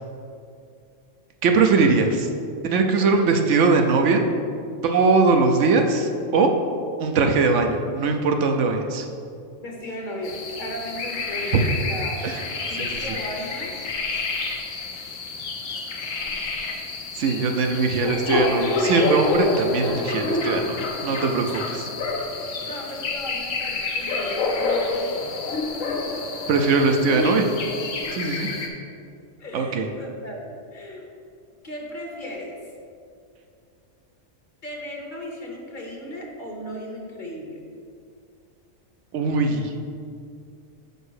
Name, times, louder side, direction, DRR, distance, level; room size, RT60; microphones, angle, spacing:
voice 1, 1.4-2.3 2.6-4.2 4.8-6.5 7.0-9.1 12.2-12.4 12.8-12.9 17.2-21.9 26.5-27.5 28.2-28.5 29.5-29.9 39.1-39.8, right 4 dB, 70° right, 4 dB, 1.0 m, -21 dB
voice 2, 2.9-3.3 9.6-12.3 12.7-13.7 16.2-16.3 21.2-21.7 22.6-25.3 28.1-28.6 29.4-31.1 31.6-32.6 34.6-37.6, left 1 dB, 45° left, 0 dB, 1.1 m, -36 dB
sound 1, 10.2-28.7, left 3 dB, 85° left, 1.2 m, -28 dB
5.4 x 4.8 x 6.4 m, 2.4 s
omnidirectional pair, 1.3 m